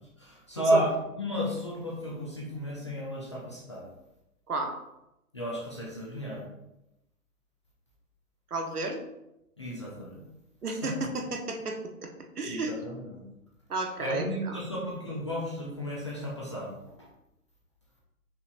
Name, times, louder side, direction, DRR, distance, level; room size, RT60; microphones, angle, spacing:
voice 1, 0.2-3.9 5.3-6.4 9.6-10.2 10.8-10.9 12.5-13.2 14.0-16.8, equal, 20° left, -4 dB, 0.4 m, -32 dB
voice 2, 8.5-9.0 10.6-12.1 12.4-12.7 13.7-14.6, right 3 dB, 80° right, 3 dB, 1.0 m, -32 dB
5.5 x 3.2 x 2.5 m, 0.88 s
figure-of-eight pair, 135°, 45 cm